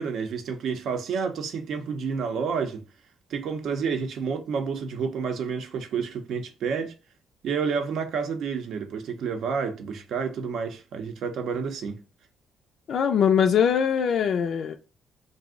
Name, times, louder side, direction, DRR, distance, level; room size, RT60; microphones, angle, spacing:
voice 1, 0.0-2.8 3.3-6.9 7.4-12.0, right 6 dB, 70° right, 0.6 m, -29 dB
voice 2, 12.9-14.8, left 7 dB, 65° left, 0.3 m, -22 dB
2.5 x 2.0 x 3.6 m
cardioid pair, 90°, 0 cm